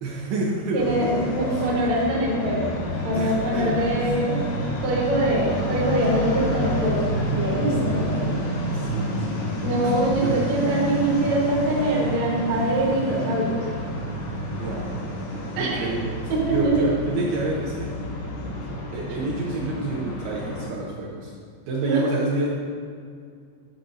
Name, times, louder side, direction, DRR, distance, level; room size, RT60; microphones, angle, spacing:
voice 1, 0.0-1.7 3.1-3.8 5.3-5.5 7.4-9.4 9.8-10.3 14.5-14.9 15.6-16.2 16.5-17.9 18.9-21.3 21.7-22.5, right 2 dB, 75° right, -5 dB, 2.4 m, -29 dB
voice 2, 0.7-4.4 4.8-8.1 9.6-13.6 15.6-15.9 16.3-16.9 21.8-22.0, right 1 dB, 60° right, -4 dB, 1.9 m, -23 dB
sound 1, 0.8-20.7, left 1 dB, 90° left, 3.6 m, -29 dB
10.0 x 5.8 x 2.6 m, 2.2 s
omnidirectional pair, 4.9 m